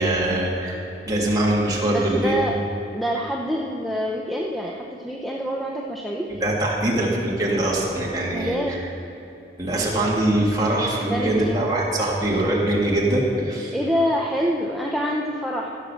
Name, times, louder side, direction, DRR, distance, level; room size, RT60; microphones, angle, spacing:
voice 1, 0.0-2.4 6.3-8.8 9.6-13.7, right 1 dB, 20° right, -4 dB, 1.9 m, -23 dB
voice 2, 1.9-2.6 2.9-6.4 8.3-8.9 11.1-11.6 13.7-15.7, equal, ahead, -2 dB, 0.6 m, -26 dB
15.5 x 6.3 x 7.0 m, 3.0 s
head